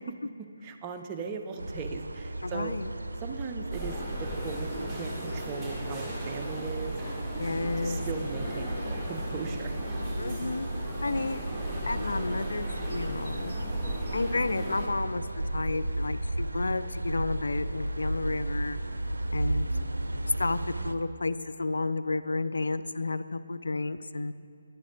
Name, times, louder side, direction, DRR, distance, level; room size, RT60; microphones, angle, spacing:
voice 1, 0.6-2.8 3.2-3.9 4.2-6.9 7.5-9.7, right 5 dB, 20° right, 4 dB, 0.5 m, -39 dB
sound 1, 1.6-21.0, right 1 dB, 70° right, 0.5 m, -34 dB
voice 2, 2.4-2.9 7.4-8.0 10.2-10.7 11.0-11.4 11.9-13.6 14.1-18.8 19.3-19.7 20.4-20.6 20.8-24.3, left 3 dB, 65° left, 13 dB, 0.3 m, -31 dB
sound 2, 3.7-14.9, right 1 dB, 5° right, 1.5 m, -38 dB
10.0 x 8.3 x 3.7 m, 2.5 s
figure-of-eight pair, 145°, 0 cm